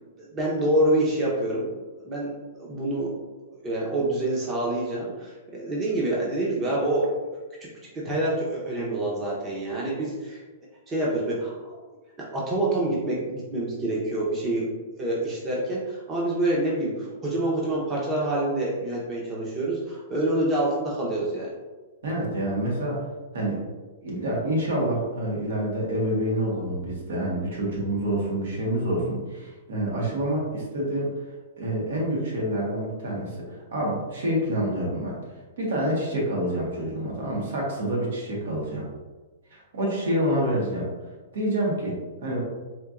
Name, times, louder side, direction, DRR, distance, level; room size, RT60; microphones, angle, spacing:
voice 1, 0.3-1.8 2.0-2.3 2.6-3.1 3.6-7.1 7.9-10.4 10.9-11.5 12.3-14.6 15.0-21.5, right 1 dB, 20° right, -5 dB, 0.7 m, -26 dB
voice 2, 22.0-23.0 23.3-23.6 24.0-31.1 31.6-35.2 35.6-38.9 39.5-40.9 41.3-42.4, right 1 dB, 75° right, -3 dB, 1.3 m, -27 dB
4.3 x 2.7 x 2.4 m, 1.2 s
hypercardioid pair, 155°, 0 cm